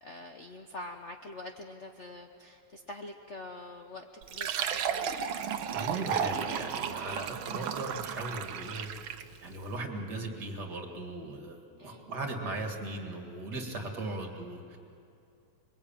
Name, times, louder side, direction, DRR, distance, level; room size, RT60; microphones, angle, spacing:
voice 1, 0.0-5.2 11.8-12.1, left 2 dB, 45° left, 3 dB, 1.0 m, -45 dB
Fill (with liquid), 4.2-9.4, right 8 dB, 70° right, 1.7 m, -34 dB
voice 2, 5.7-8.9 9.4-14.8, right 2 dB, 50° right, 3 dB, 2.8 m, -38 dB
26.0 x 22.5 x 8.9 m, 2.7 s
omnidirectional pair, 2.4 m